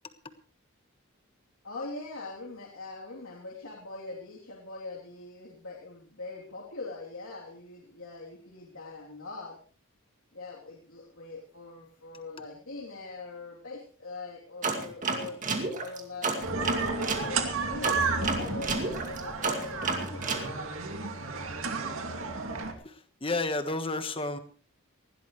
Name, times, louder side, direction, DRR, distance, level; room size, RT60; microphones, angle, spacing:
voice 1, 1.6-9.6 10.3-15.5 15.8-16.6 17.2-20.8, left 3 dB, 65° left, -4 dB, 3.3 m, -42 dB
sound 1, 14.6-17.3 17.8-20.5, right 4 dB, 35° right, 2.3 m, -31 dB
sound 2, 16.4-22.7, right 4 dB, 65° right, 2.5 m, -32 dB
voice 2, 22.8-24.4, left 2 dB, 25° left, 9 dB, 1.4 m, -31 dB
20.0 x 16.5 x 3.2 m, 0.42 s
head